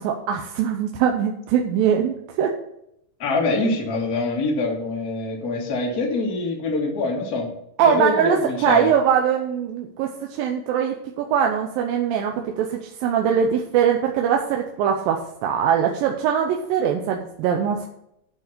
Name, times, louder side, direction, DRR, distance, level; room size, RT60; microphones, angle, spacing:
voice 1, 0.0-2.5 7.8-8.4 8.6-17.9, right 8 dB, 85° right, 2 dB, 2.6 m, -22 dB
voice 2, 3.2-7.6 7.8-8.9, left 3 dB, 35° left, -1 dB, 1.8 m, -24 dB
8.9 x 5.7 x 6.7 m, 0.76 s
omnidirectional pair, 4.0 m